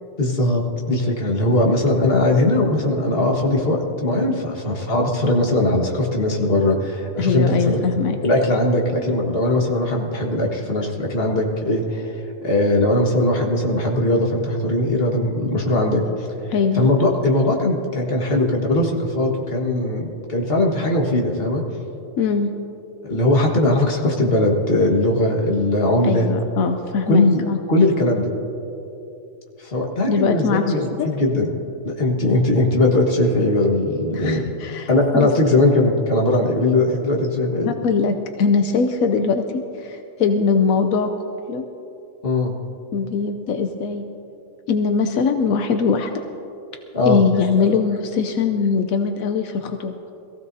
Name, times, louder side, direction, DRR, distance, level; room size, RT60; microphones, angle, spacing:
voice 1, 0.2-7.9 8.2-12.1 12.4-16.3 16.7-21.6 23.0-26.3 27.1-27.4 27.7-28.3 29.6-31.5 31.8-34.4 34.9-37.7 42.2-42.5 46.9-47.2, left 1 dB, 45° left, 0 dB, 1.8 m, -20 dB
voice 2, 7.2-8.2 16.5-16.8 22.2-22.5 26.0-27.6 30.1-30.6 30.9-31.1 34.1-35.3 37.6-39.4 39.8-41.1 41.5-41.6 42.9-44.0 44.7-46.1 47.0-49.9, left 5 dB, 85° left, 6 dB, 1.1 m, -21 dB
21.5 x 15.5 x 2.7 m, 2.8 s
omnidirectional pair, 1.4 m